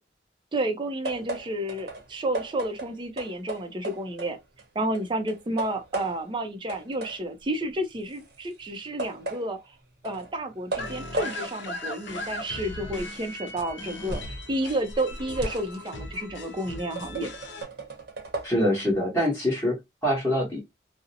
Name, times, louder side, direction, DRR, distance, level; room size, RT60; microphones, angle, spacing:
voice 1, 0.5-4.4 4.8-9.6 10.0-17.3, right 1 dB, 30° right, 0.5 m, -31 dB
sound 1, 1.0-4.7 4.9-6.4 6.7-14.4 14.8-18.5, right 2 dB, 65° right, 0.8 m, -37 dB
sound 2, 10.8-17.6, left 1 dB, 85° left, 0.6 m, -38 dB
voice 2, 18.4-20.6, equal, 15° left, 1.0 m, -25 dB
2.5 x 2.0 x 2.7 m
head